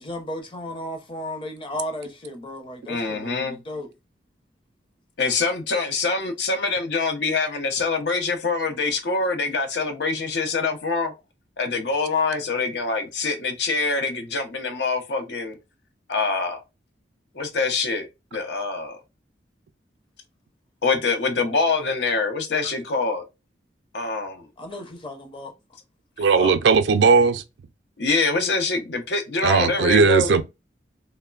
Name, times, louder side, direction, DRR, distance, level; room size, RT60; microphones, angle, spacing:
voice 1, 0.0-3.9 24.6-25.5, left 1 dB, 30° left, 0.7 m, -34 dB
voice 2, 2.9-3.6 5.2-11.1 11.6-15.6 16.1-16.6 17.3-19.0 20.8-23.2 23.9-24.4 26.4-26.5 28.0-30.3, left 3 dB, 70° left, 0.6 m, -25 dB
voice 3, 26.2-27.4 29.4-30.4, right 4 dB, 75° right, 0.4 m, -17 dB
3.1 x 2.0 x 2.2 m
head